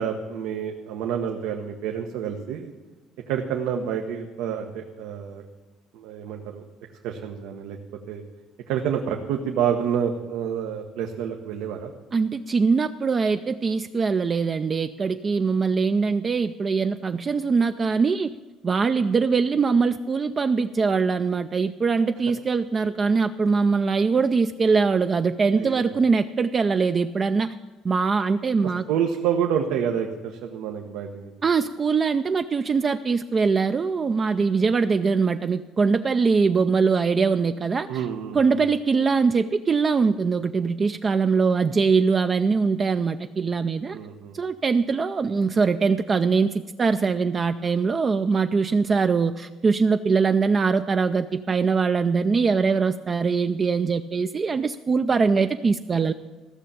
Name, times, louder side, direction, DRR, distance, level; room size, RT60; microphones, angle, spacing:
voice 1, 0.0-2.7 3.3-5.4 5.9-6.6 7.0-7.8 8.1-8.2 8.7-11.9 25.6-26.0 28.9-31.3 37.9-38.6 43.9-44.4, right 8 dB, 90° right, 3 dB, 1.1 m, -28 dB
voice 2, 12.1-18.3 18.6-27.5 27.8-28.8 31.4-38.0 38.3-44.0 44.3-56.1, right 5 dB, 25° right, 9 dB, 0.3 m, -22 dB
15.0 x 6.8 x 8.8 m, 1.3 s
cardioid pair, 165°, 0 cm